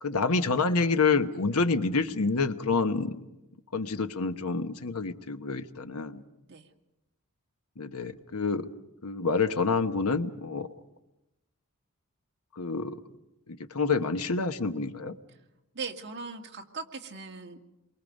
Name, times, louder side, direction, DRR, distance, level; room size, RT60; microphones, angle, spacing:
voice 1, 0.0-3.2 3.7-6.2 7.8-8.7 9.0-10.7 12.6-13.0 13.7-15.1, left 4 dB, 75° left, 8 dB, 1.2 m, -27 dB
voice 2, 15.7-17.6, right 4 dB, 50° right, 2 dB, 2.0 m, -39 dB
28.5 x 23.5 x 5.3 m, 0.93 s
head